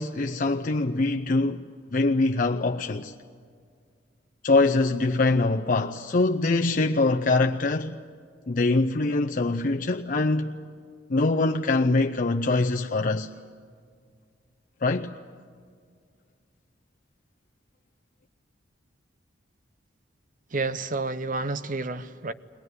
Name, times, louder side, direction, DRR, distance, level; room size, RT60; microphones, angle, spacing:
voice 1, 0.0-1.7 1.9-3.1 4.4-8.0 8.5-10.5 11.1-13.3 14.8-15.1, left 3 dB, 45° left, 0.6 m, -23 dB
voice 2, 20.5-22.3, right 3 dB, 45° right, 0.8 m, -30 dB
22.0 x 19.5 x 9.6 m
head